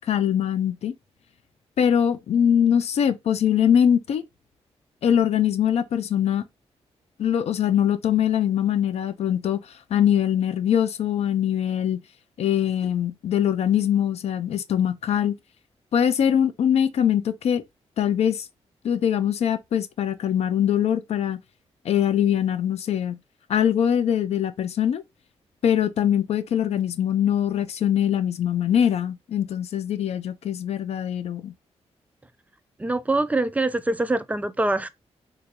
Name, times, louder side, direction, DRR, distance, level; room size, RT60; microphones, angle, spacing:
voice 1, 0.1-0.9 1.8-4.2 5.0-6.4 7.2-9.6 9.9-12.0 12.4-15.3 15.9-17.6 18.0-18.5 18.8-21.4 21.8-23.2 23.5-25.0 25.6-31.5, left 9 dB, 70° left, 0.4 m, -22 dB
voice 2, 32.8-34.9, right 2 dB, 15° right, 0.3 m, -24 dB
3.8 x 2.2 x 2.9 m
cardioid pair, 105°, 11 cm